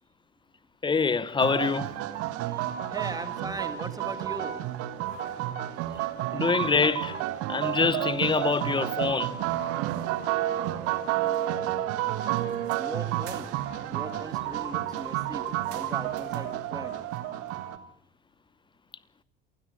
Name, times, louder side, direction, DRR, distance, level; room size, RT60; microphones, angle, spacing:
voice 1, 0.8-1.9 6.3-7.2 7.5-9.4, left 5 dB, 15° left, 0.9 m, -25 dB
sound 1, 1.4-17.8, right 13 dB, 55° right, 1.6 m, -30 dB
voice 2, 2.4-4.6 5.9-6.5 12.4-13.5 13.9-16.9, right 2 dB, 15° right, 2.2 m, -40 dB
27.0 x 20.0 x 5.0 m
figure-of-eight pair, 65°, 29 cm